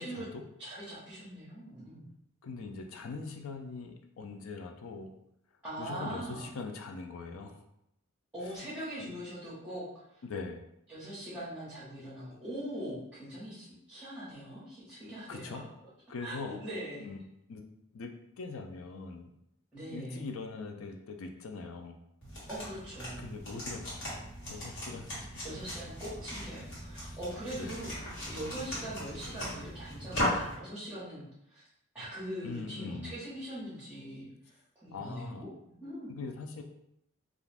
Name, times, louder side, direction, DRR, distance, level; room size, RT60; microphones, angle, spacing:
voice 1, 0.0-0.4 2.4-5.1 5.8-7.6 8.4-8.6 9.0-9.1 10.2-10.6 15.3-15.6 16.1-16.6 17.0-17.2 17.5-17.6 17.9-18.1 18.4-19.3 19.9-22.0 23.2-24.1 24.4-25.4 27.0-27.2 27.6-27.8 32.4-33.1 34.9-35.5 36.1-36.6, left 4 dB, 80° left, 4 dB, 0.4 m, -42 dB
voice 2, 0.6-2.0 5.6-6.5 8.3-9.8 10.9-15.6 16.2-17.1 19.7-20.2 22.5-23.3 25.4-27.9 28.2-31.2 31.5-31.6 31.9-34.3 34.8-36.1, right 1 dB, 5° right, -11 dB, 1.0 m, -41 dB
sound 1, 22.2-30.6, left 1 dB, 60° left, 1.3 m, -38 dB
2.4 x 2.4 x 3.3 m, 0.77 s
head